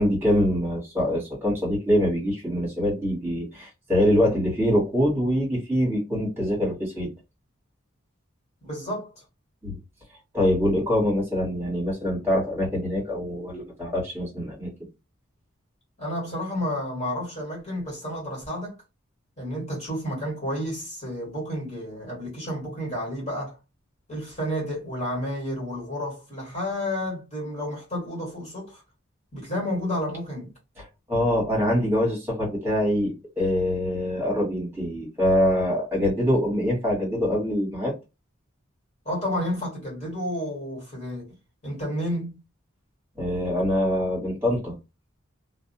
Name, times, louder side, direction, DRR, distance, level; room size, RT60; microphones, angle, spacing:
voice 1, 0.0-7.1 9.6-9.8 10.3-14.7 30.8-37.9 43.2-44.7, left 1 dB, 10° right, 1.4 m, -24 dB
voice 2, 8.6-9.2 16.0-18.8 19.4-23.6 24.1-28.8 29.3-30.5 39.0-41.3 41.6-42.3, equal, 35° left, 1.5 m, -31 dB
2.6 x 2.0 x 2.7 m
head